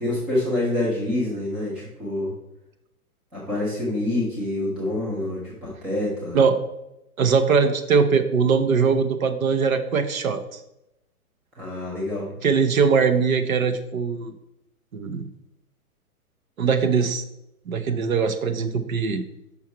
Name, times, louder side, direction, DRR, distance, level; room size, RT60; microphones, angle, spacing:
voice 1, 0.0-2.3 3.3-6.4 11.6-12.2, left 1 dB, ahead, -7 dB, 0.3 m, -26 dB
voice 2, 7.2-10.4 12.4-14.3 14.9-15.2 16.6-17.2 17.7-19.2, right 5 dB, 65° right, 8 dB, 1.0 m, -21 dB
5.7 x 5.6 x 4.5 m, 0.88 s
figure-of-eight pair, 115°, 44 cm